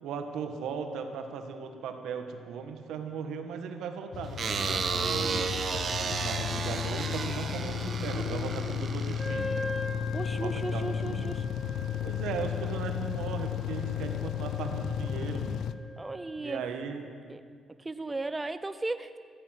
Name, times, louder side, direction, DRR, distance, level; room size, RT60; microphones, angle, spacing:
voice 1, 0.0-5.5 6.0-9.6 10.3-11.3 12.0-15.6 16.4-17.1, right 6 dB, 85° right, 6 dB, 1.4 m, -37 dB
sound 1, 4.1-15.7, left 9 dB, 70° left, 0.4 m, -34 dB
sound 2, 4.4-9.7, right 5 dB, 50° right, 1.1 m, -33 dB
Wind instrument woodwind instrument, 9.2-16.5, left 2 dB, 10° left, 1.9 m, -41 dB
voice 2, 10.1-11.5 16.0-16.7 17.3-17.4 17.8-19.2, right 2 dB, 20° right, 11 dB, 0.5 m, -35 dB
14.0 x 13.5 x 5.9 m, 2.2 s
cardioid pair, 90°, 0 cm